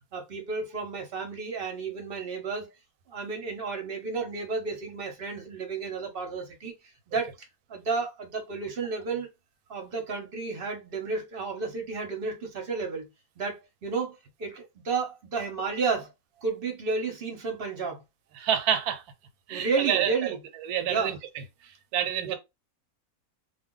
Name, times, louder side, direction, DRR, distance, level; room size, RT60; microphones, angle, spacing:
voice 1, 0.1-2.7 3.1-6.7 7.1-7.3 7.7-9.3 9.7-13.1 13.4-16.1 16.4-18.0 19.5-20.4 20.9-21.1 22.2-22.4, right 4 dB, 50° right, 0.8 m, -32 dB
voice 2, 18.4-19.0 19.5-20.1 20.7-21.2 21.9-22.4, right 9 dB, 90° right, 1.1 m, -27 dB
2.3 x 2.2 x 3.7 m
omnidirectional pair, 1.6 m